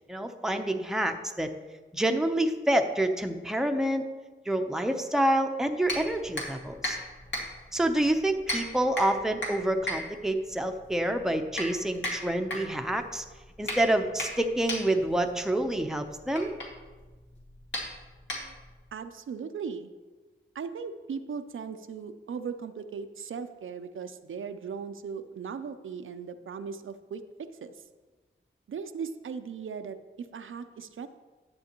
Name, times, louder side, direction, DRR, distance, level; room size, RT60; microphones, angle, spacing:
voice 1, 0.1-1.5 1.9-4.0 4.5-7.0 7.7-13.2 13.6-16.5, right 1 dB, ahead, 5 dB, 0.7 m, -27 dB
sound 1, 5.8-18.9, left 1 dB, 60° left, 2.0 m, -37 dB
voice 2, 18.9-19.9 20.5-27.7 28.7-31.1, right 6 dB, 70° right, 9 dB, 0.5 m, -38 dB
11.0 x 7.5 x 3.0 m, 1.3 s
wide cardioid pair, 80°, 21 cm